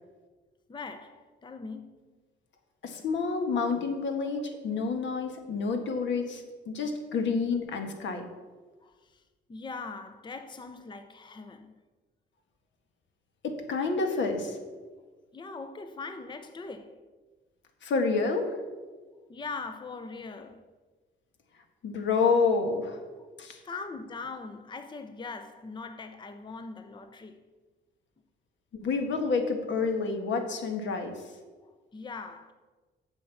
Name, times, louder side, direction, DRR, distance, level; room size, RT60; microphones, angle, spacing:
voice 1, 0.7-2.1 8.8-9.2 9.5-11.7 15.0-17.1 19.3-20.6 23.2-23.3 23.6-27.4 31.6-32.5, left 4 dB, 25° left, 0.7 m, -41 dB
voice 2, 2.8-8.3 13.4-14.6 17.8-18.6 21.8-23.0 23.4-23.6 28.8-31.2, left 4 dB, 65° left, 1.7 m, -28 dB
8.0 x 6.6 x 7.0 m
cardioid pair, 90°, 20 cm